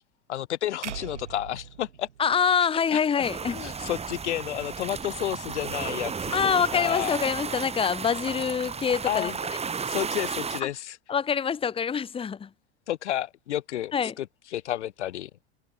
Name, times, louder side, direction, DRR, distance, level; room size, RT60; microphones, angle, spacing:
voice 1, 0.3-2.1 2.9-3.0 3.5-7.1 9.1-9.4 9.8-11.0 12.9-15.3, left 12 dB, 75° left, 0.8 m, -31 dB
sound 1, 0.8-3.1, right 8 dB, 80° right, 6.6 m, -41 dB
voice 2, 2.2-3.6 6.3-9.3 10.6-10.7 11.1-12.5 13.9-14.1, left 7 dB, 15° left, 1.0 m, -25 dB
sound 2, 3.2-10.6, right 5 dB, 15° right, 2.8 m, -33 dB
hypercardioid pair, 95°, 35 cm